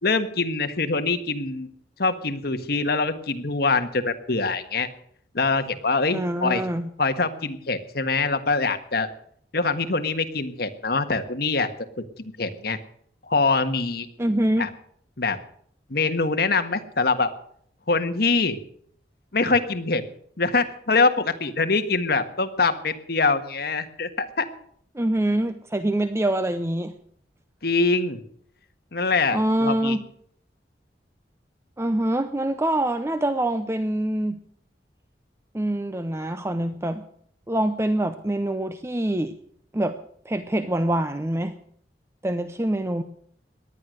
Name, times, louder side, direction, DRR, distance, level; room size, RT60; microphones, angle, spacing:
voice 1, 0.0-1.7 2.0-4.9 5.3-6.6 7.0-9.1 9.5-11.7 12.2-12.8 13.2-14.1 14.6-14.7 15.2-15.4 15.9-17.3 17.9-18.6 19.3-20.0 20.4-24.5 27.6-28.2 28.9-30.0, left 3 dB, 60° left, 8 dB, 1.5 m, -24 dB
voice 2, 6.1-6.9 14.2-14.7 24.9-27.0 29.3-30.0 31.8-34.4 35.5-37.0 37.5-39.3 39.7-40.0 40.3-41.6 42.2-43.0, right 1 dB, 15° right, 10 dB, 0.7 m, -25 dB
18.5 x 11.5 x 6.5 m, 0.63 s
head